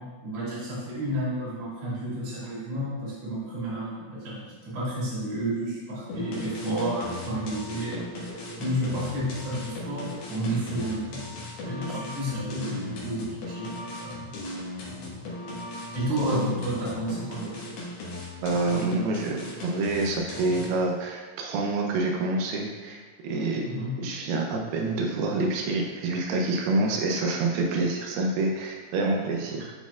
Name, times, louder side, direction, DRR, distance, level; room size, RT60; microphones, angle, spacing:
voice 1, 0.0-8.0 8.6-11.2 11.6-14.2 15.9-17.7 23.6-24.0, right 1 dB, 45° right, -8 dB, 2.7 m, -31 dB
sound 1, 6.1-20.9, left 2 dB, 75° left, 3.1 m, -38 dB
voice 2, 18.4-23.7 24.0-29.7, right 2 dB, 85° right, 0 dB, 2.6 m, -27 dB
10.5 x 4.2 x 2.4 m, 1.4 s
omnidirectional pair, 4.4 m